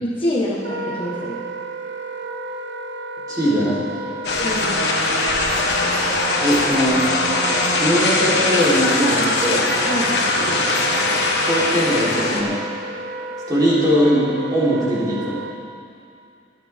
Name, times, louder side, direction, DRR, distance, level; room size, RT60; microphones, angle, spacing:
voice 1, 0.0-1.4 4.4-4.8 9.9-10.2, left 1 dB, 30° left, -6 dB, 1.5 m, -25 dB
Wind instrument woodwind instrument, 0.6-15.5, right 2 dB, 65° right, 0.7 m, -32 dB
voice 2, 3.3-4.1 6.4-7.0 7.8-9.7 11.4-12.6 13.5-15.4, equal, 20° right, -9 dB, 3.8 m, -20 dB
sound 1, 4.2-12.4, left 2 dB, 60° left, 1.5 m, -21 dB
22.0 x 9.4 x 3.7 m, 2.5 s
head